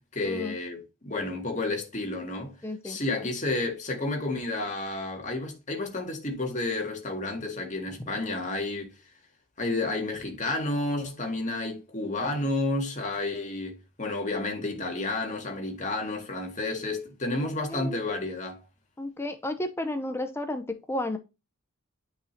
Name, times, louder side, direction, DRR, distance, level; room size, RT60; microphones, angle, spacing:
voice 1, 0.0-2.6 2.8-8.9 9.6-18.6, left 2 dB, 35° left, 1.9 m, -31 dB
voice 2, 2.6-3.3 17.7-18.0 19.0-21.2, left 1 dB, 10° left, 0.6 m, -33 dB
9.0 x 5.1 x 2.7 m
head